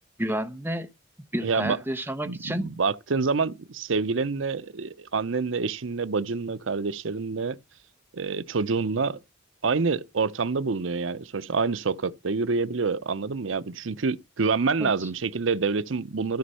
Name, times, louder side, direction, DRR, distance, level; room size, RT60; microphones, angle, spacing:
voice 1, 0.2-0.9 1.3-2.7 14.8-15.1, right 1 dB, 10° right, 1.0 m, -30 dB
voice 2, 1.4-1.8 2.2-7.6 8.1-9.2 9.6-16.4, right 4 dB, 75° right, 0.7 m, -27 dB
13.0 x 5.2 x 5.6 m
head